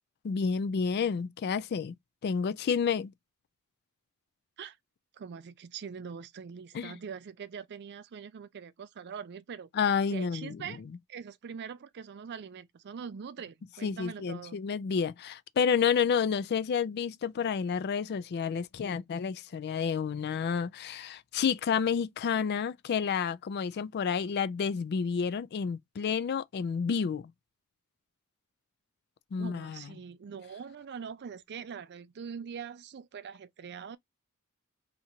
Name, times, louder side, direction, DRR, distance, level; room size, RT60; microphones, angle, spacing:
voice 1, 0.2-1.9 2.2-3.1 6.7-7.0 9.7-10.6 13.8-27.3 29.3-29.8, left 6 dB, 45° left, 0.3 m, -30 dB
voice 2, 5.1-9.7 10.1-10.8 11.1-14.6 29.4-34.0, right 6 dB, 50° right, 0.4 m, -43 dB
2.8 x 2.5 x 4.3 m
head